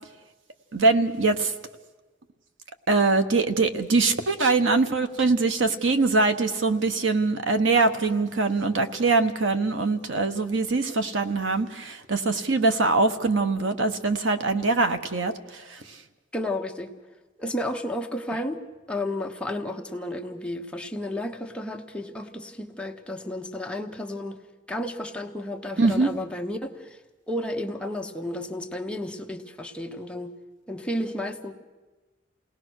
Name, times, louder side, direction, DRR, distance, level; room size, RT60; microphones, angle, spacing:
voice 1, 0.7-1.5 2.9-16.0 25.8-26.1, right 3 dB, 80° right, 8 dB, 1.2 m, -23 dB
voice 2, 16.3-16.9 17.4-18.6 18.9-24.4 24.7-27.0 27.3-30.3 30.7-31.5, left 1 dB, 5° left, 2 dB, 1.1 m, -32 dB
28.5 x 18.5 x 6.4 m, 1.2 s
head